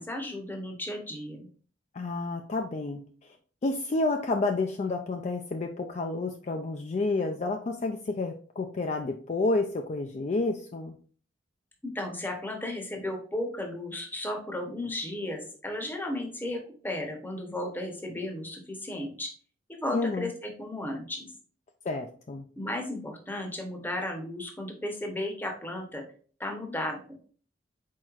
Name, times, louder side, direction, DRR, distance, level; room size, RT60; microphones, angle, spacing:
voice 1, 0.0-1.5 11.8-19.3 19.7-21.3 22.6-26.0 26.4-27.0, left 1 dB, 10° left, 2 dB, 0.8 m, -34 dB
voice 2, 1.9-3.4 3.6-11.0 19.9-20.3 21.8-22.5, left 3 dB, 35° left, 4 dB, 0.3 m, -30 dB
4.6 x 4.2 x 2.4 m, 0.44 s
head